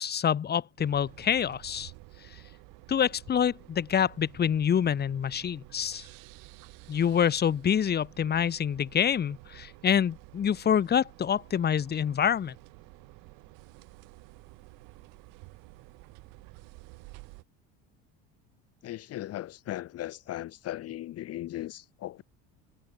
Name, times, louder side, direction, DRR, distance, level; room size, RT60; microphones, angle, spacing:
voice 1, 0.0-1.9 2.9-6.1 6.9-12.5, left 8 dB, 30° left, 2.2 m, -26 dB
sound 1, 0.8-17.4, right 29 dB, 75° right, 5.9 m, -51 dB
voice 2, 18.8-22.2, left 14 dB, 50° left, 1.8 m, -37 dB
cardioid pair, 130°, 32 cm